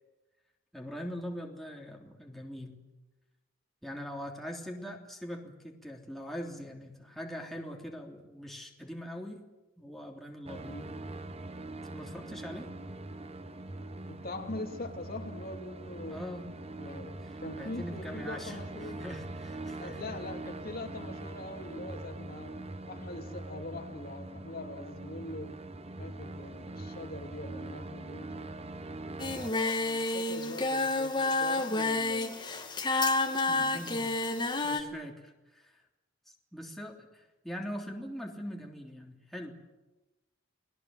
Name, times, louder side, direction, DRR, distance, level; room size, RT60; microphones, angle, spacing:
voice 1, 0.7-2.8 3.8-9.4 9.8-10.8 11.9-12.7 16.1-16.5 17.5-20.1 33.5-34.2 34.6-35.8 36.3-39.6, equal, ahead, 0 dB, 3.2 m, -42 dB
sound 1, 10.4-29.5, right 2 dB, 30° right, 1.3 m, -42 dB
voice 2, 14.1-16.2 16.8-19.0 19.8-22.6 22.9-25.6 26.0-28.6 29.8-32.7 33.5-34.6, left 2 dB, 50° left, 3 dB, 3.0 m, -43 dB
Singing, 29.2-34.8, left 2 dB, 25° left, 2.3 m, -29 dB
30.0 x 20.5 x 7.8 m, 1.1 s
head